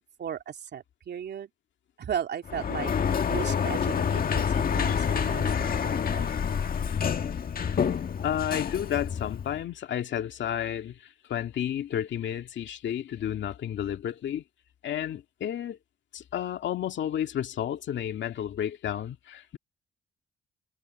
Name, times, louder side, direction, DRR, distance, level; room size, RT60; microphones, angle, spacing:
voice 1, 0.2-1.5 2.0-2.9 3.3-6.3, right 9 dB, 60° right, 3.2 m, -36 dB
Sliding door, 2.5-9.6, left 7 dB, 45° left, 1.7 m, -28 dB
voice 2, 8.2-14.4 14.8-15.8 16.1-19.6, left 10 dB, 65° left, 2.2 m, -31 dB
cardioid pair, 90°, 20 cm